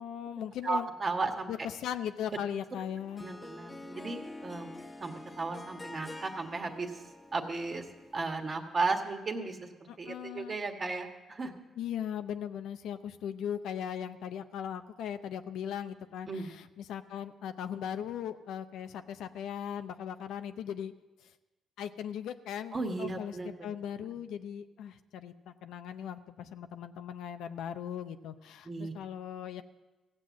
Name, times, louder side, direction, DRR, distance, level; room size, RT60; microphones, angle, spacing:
voice 1, 0.0-0.9 1.5-3.3 9.9-10.6 11.8-20.9 21.2-21.3 21.8-23.3 23.6-29.6, left 9 dB, 80° left, 10 dB, 0.6 m, -38 dB
voice 2, 0.6-1.5 3.2-4.7 5.0-7.0 7.3-7.9 8.1-11.6 16.3-16.5 22.7-23.7 28.6-28.9, right 3 dB, 40° right, 4 dB, 1.5 m, -35 dB
Harp, 2.8-8.6, left 2 dB, 20° left, 0.8 m, -47 dB
15.5 x 7.7 x 7.3 m, 1.1 s
cardioid pair, 90°, 0 cm